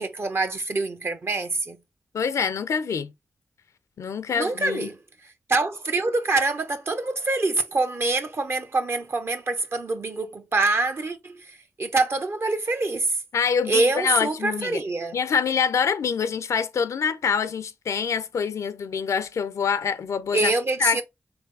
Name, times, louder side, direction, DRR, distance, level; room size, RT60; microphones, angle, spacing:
voice 1, 0.0-1.8 4.3-5.0 5.2-13.2 13.7-15.2 20.3-21.0, right 3 dB, 55° right, 0.9 m, -25 dB
voice 2, 2.1-3.1 4.0-4.9 13.3-14.8 15.1-20.5 20.8-21.0, left 6 dB, 85° left, 0.5 m, -25 dB
3.9 x 3.5 x 3.3 m
cardioid pair, 55°, 5 cm